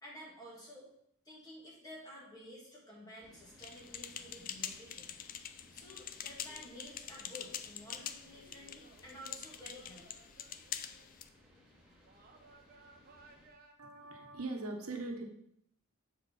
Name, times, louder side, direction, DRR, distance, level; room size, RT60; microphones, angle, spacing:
voice 1, 0.0-0.9 1.2-5.2 5.7-10.2, equal, 15° left, -4 dB, 2.4 m, -52 dB
sound 1, 3.2-13.5, left 1 dB, 5° right, 2.9 m, -62 dB
sound 2, 3.6-11.3, left 9 dB, 40° left, 0.4 m, -45 dB
sound 3, 7.5-7.8 8.3-11.1 12.0-13.7, right 3 dB, 45° right, 0.9 m, -62 dB
voice 2, 13.8-15.2, right 2 dB, 85° right, 3 dB, 1.2 m, -40 dB
7.4 x 4.7 x 5.5 m, 0.73 s
head